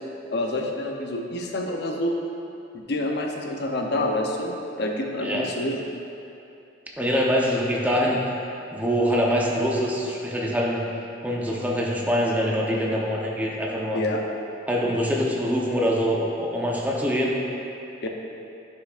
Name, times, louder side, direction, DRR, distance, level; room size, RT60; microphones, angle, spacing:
voice 1, 0.3-2.2 2.7-5.8 13.9-14.2 18.0-18.1, left 1 dB, 60° left, 2 dB, 0.7 m, -27 dB
voice 2, 7.0-8.2 8.7-10.8 11.2-14.0 14.7-17.4, equal, 10° right, -3 dB, 0.8 m, -24 dB
10.0 x 5.8 x 2.5 m, 2.7 s
head